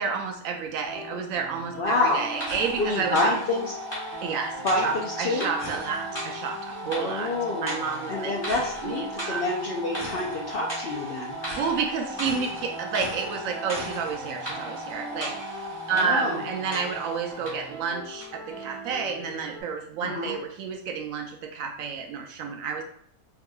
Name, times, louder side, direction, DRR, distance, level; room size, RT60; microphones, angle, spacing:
voice 1, 0.0-3.3 4.2-4.6 4.8-7.3 7.6-8.3 8.8-9.4 11.6-22.8, right 5 dB, 70° right, 3 dB, 0.9 m, -30 dB
sound 1, 0.8-19.6, right 1 dB, 15° right, 0.7 m, -42 dB
voice 2, 1.8-2.2 2.8-3.7 4.6-5.5 7.0-7.7 8.1-11.3 16.0-16.4 20.0-20.3, left 2 dB, 70° left, -1 dB, 0.5 m, -27 dB
sound 2, 1.8-17.7 18.2-18.3, equal, 15° left, 1.3 m, -36 dB
4.6 x 2.9 x 2.3 m, 0.62 s
omnidirectional pair, 1.6 m